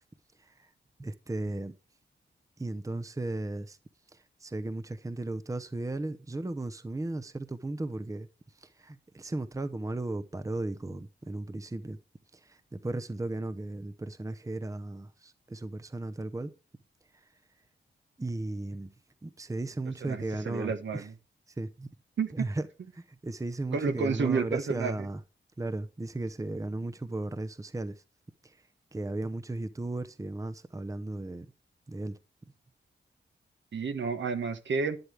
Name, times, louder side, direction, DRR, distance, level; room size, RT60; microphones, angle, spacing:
voice 1, 0.4-0.7 1.0-1.8 2.6-3.8 4.1-8.3 8.5-12.0 12.3-16.5 17.1-17.3 18.2-18.9 19.2-21.1 21.5-21.9 22.3-22.7 22.9-25.2 25.6-28.0 28.4-28.6 28.9-31.5 31.9-32.2, right 2 dB, 15° right, 0.7 m, -36 dB
voice 2, 20.0-21.1 22.2-22.3 23.7-24.9 33.7-35.0, right 5 dB, 70° right, 1.2 m, -30 dB
11.5 x 9.8 x 3.4 m
cardioid pair, 70°, 20 cm